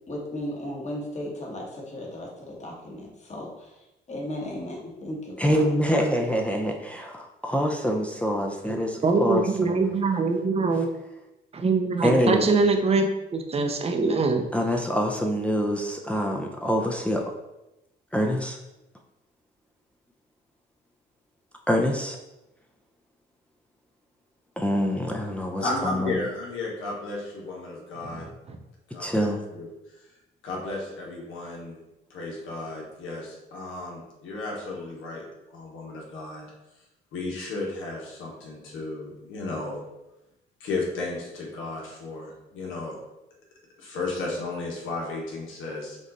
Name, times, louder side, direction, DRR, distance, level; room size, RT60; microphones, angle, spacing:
voice 1, 0.1-5.7, left 1 dB, 35° left, -2 dB, 1.3 m, -36 dB
voice 2, 5.4-9.9 12.0-12.5 14.5-17.3 18.1-18.6 21.7-22.2 24.6-26.2 29.0-29.4, equal, 5° left, 1 dB, 0.5 m, -25 dB
voice 3, 9.0-10.9 11.5-14.4, right 4 dB, 30° right, 5 dB, 0.7 m, -23 dB
voice 4, 25.6-28.3 28.9-30.0 30.4-31.8 32.1-35.2 35.5-36.4 37.1-39.8 40.6-43.0 43.8-46.0, left 2 dB, 85° left, -2 dB, 1.3 m, -34 dB
5.2 x 2.5 x 4.0 m, 0.94 s
cardioid pair, 90°, 20 cm